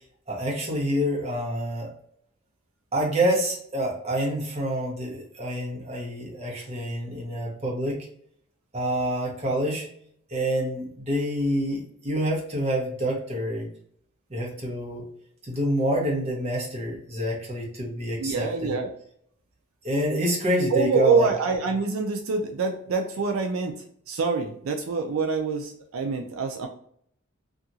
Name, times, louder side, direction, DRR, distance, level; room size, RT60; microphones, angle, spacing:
voice 1, 0.3-1.9 2.9-8.1 8.7-9.9 10.3-13.7 14.3-15.0 15.4-18.7 19.8-21.3, equal, 30° right, -3 dB, 0.9 m, -27 dB
voice 2, 18.2-18.9 20.7-23.7 24.1-26.7, right 4 dB, 75° right, 3 dB, 0.4 m, -25 dB
2.8 x 2.4 x 2.7 m, 0.66 s
head